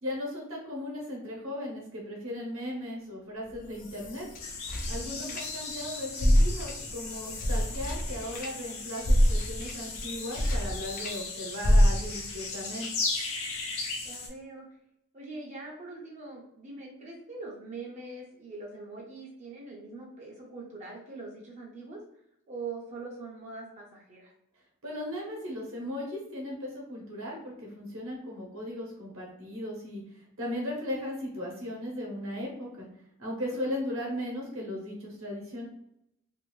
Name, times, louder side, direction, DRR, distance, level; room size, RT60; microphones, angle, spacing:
voice 1, 0.0-4.2 4.9-12.9 24.8-32.9 33.2-35.6, left 1 dB, 65° right, -2 dB, 0.9 m, -37 dB
sound 1, 3.5-5.8 6.1-11.2 11.6-12.3, equal, 40° left, 0.4 m, -27 dB
sound 2, 4.4-14.3, left 3 dB, 80° left, 0.8 m, -37 dB
voice 2, 5.1-5.4 14.0-14.7 15.1-22.0 22.5-24.3 33.4-33.7, right 3 dB, 35° right, -3 dB, 0.5 m, -43 dB
2.6 x 2.5 x 3.0 m, 0.78 s
head